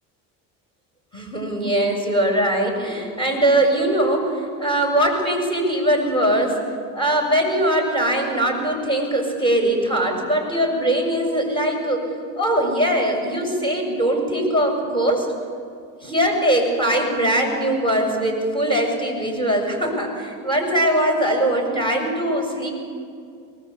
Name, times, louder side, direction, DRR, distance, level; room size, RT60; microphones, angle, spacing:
voice 1, 1.1-6.6 6.9-12.1 12.4-15.3 16.0-22.7, right 1 dB, 15° left, 1 dB, 7.1 m, -21 dB
23.0 x 19.5 x 8.5 m, 2.3 s
supercardioid pair, 90°, 37 cm